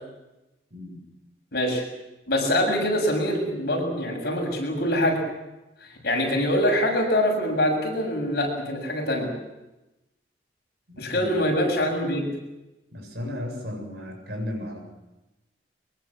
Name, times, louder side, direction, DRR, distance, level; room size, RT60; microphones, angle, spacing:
voice 1, 1.5-1.8 2.3-5.2 6.0-9.3 11.0-12.2, left 1 dB, 60° left, 1 dB, 7.4 m, -24 dB
voice 2, 10.9-11.4 12.9-14.8, left 1 dB, 65° right, 3 dB, 7.7 m, -34 dB
23.0 x 23.0 x 7.4 m, 0.99 s
head